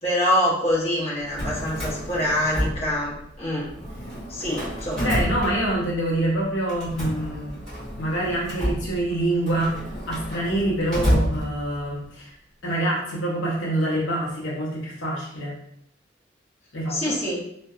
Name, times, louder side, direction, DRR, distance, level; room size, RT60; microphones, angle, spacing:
voice 1, 0.0-3.7 4.3-5.1 16.9-17.4, left 1 dB, 35° left, -6 dB, 0.9 m, -25 dB
Drawer open or close, 1.2-3.4 3.7-6.1 6.7-12.0, equal, 5° left, 1.4 m, -29 dB
voice 2, 5.0-7.6 8.0-12.3 12.6-15.5 16.7-17.1, right 1 dB, 80° left, -5 dB, 0.7 m, -26 dB
2.7 x 2.2 x 2.3 m, 0.73 s
head